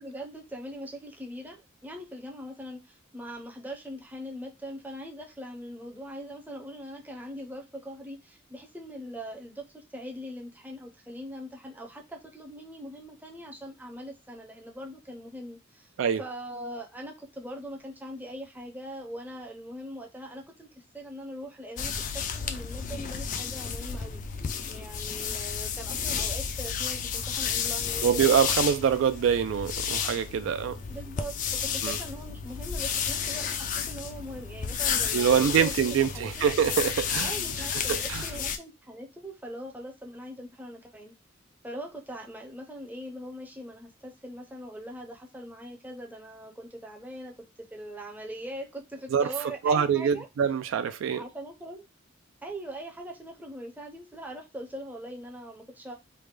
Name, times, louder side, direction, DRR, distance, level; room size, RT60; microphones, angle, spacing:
voice 1, 0.0-15.9 16.2-28.3 30.9-36.5 37.2-41.1 41.6-47.3 47.7-50.3 51.1-51.9 52.4-55.9, equal, 10° right, 0.5 m, -41 dB
touching beard, 21.8-38.6, left 7 dB, 40° left, 0.3 m, -32 dB
voice 2, 28.0-30.8 31.8-32.0 35.1-37.3 37.7-38.2 49.1-49.3 49.6-51.2, right 7 dB, 70° right, 0.3 m, -25 dB
3.2 x 2.1 x 3.2 m
head